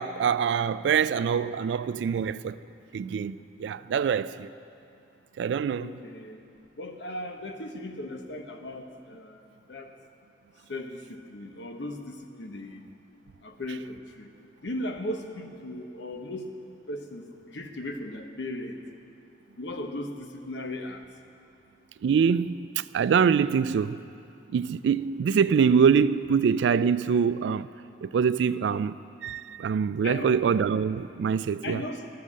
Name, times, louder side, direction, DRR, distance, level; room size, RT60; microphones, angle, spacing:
voice 1, 0.0-2.6 2.9-4.5 5.4-5.9 22.0-24.0 24.5-27.7 28.0-28.9 29.2-31.8, right 6 dB, 80° right, 0.3 m, -24 dB
voice 2, 5.8-6.4 6.8-9.4 9.7-9.9 10.7-12.8 13.4-14.3 14.6-16.5 16.9-18.8 19.6-21.0 30.0-30.4 31.6-32.0, left 1 dB, 85° left, 0.9 m, -37 dB
13.0 x 6.7 x 7.4 m
head